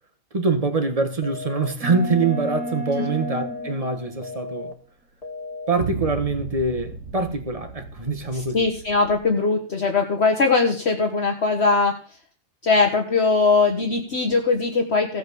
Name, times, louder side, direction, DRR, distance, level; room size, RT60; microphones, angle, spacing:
voice 1, 0.3-4.7 5.7-8.6, right 3 dB, 30° right, 1.4 m, -24 dB
sound 1, 1.2-1.7 2.2-2.7 3.2-3.7 4.2-4.7 5.2-5.7, left 3 dB, 30° left, 1.9 m, -35 dB
sound 2, 1.8-4.4 5.8-9.2, right 2 dB, 70° right, 1.7 m, -34 dB
voice 2, 8.3-12.0 12.6-15.2, left 4 dB, 55° left, 1.4 m, -20 dB
15.5 x 5.3 x 6.8 m
omnidirectional pair, 1.4 m